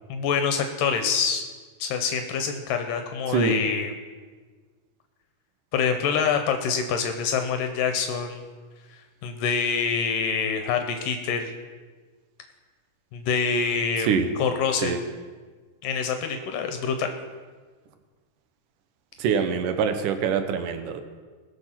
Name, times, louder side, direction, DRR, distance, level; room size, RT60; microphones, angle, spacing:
voice 1, 0.1-1.4 1.8-3.9 5.7-8.5 9.2-11.5 13.1-15.0 15.8-17.1, left 6 dB, 75° left, 6 dB, 2.4 m, -26 dB
voice 2, 19.2-21.0, right 6 dB, 75° right, 8 dB, 2.4 m, -24 dB
20.5 x 6.9 x 5.8 m, 1.5 s
omnidirectional pair, 4.0 m